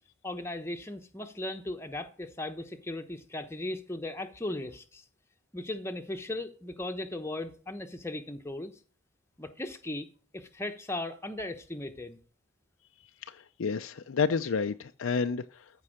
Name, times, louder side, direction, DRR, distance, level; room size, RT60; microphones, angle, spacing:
voice 1, 0.2-5.0 5.5-8.7 9.4-10.1 10.3-12.2, left 1 dB, 10° left, 0.9 m, -37 dB
voice 2, 13.2-15.7, left 5 dB, 65° left, 0.5 m, -30 dB
14.0 x 5.5 x 6.4 m
head